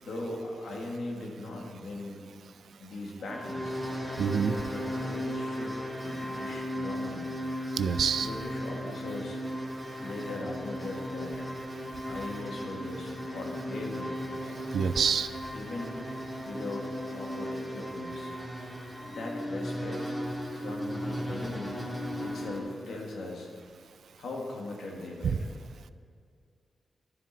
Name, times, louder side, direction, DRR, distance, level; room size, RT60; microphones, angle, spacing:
voice 1, 0.0-2.2 2.8-3.8 4.7-7.3 8.2-9.4 10.0-11.5 12.1-14.2 15.5-16.0 16.4-18.3 19.0-20.2 20.5-21.8 22.2-23.5 24.2-25.5, left 2 dB, 80° left, 0 dB, 1.7 m, -39 dB
sound 1, 3.3-22.6, equal, 5° left, 1.7 m, -36 dB
voice 2, 4.2-4.6 7.8-8.3 14.7-15.3 25.2-25.4, right 7 dB, 75° right, 13 dB, 0.3 m, -26 dB
12.5 x 7.5 x 4.0 m, 2.1 s
wide cardioid pair, 140°, 0 cm